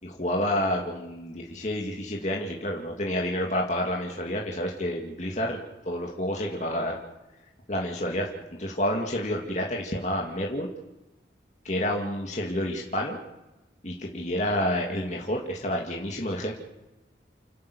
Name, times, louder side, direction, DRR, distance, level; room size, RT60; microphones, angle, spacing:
voice 1, 0.0-5.6 5.9-7.0 7.7-8.3 8.6-10.7 11.6-13.2 13.8-16.5, equal, 40° left, 0 dB, 2.4 m, -29 dB
30.0 x 11.0 x 8.5 m, 1.0 s
head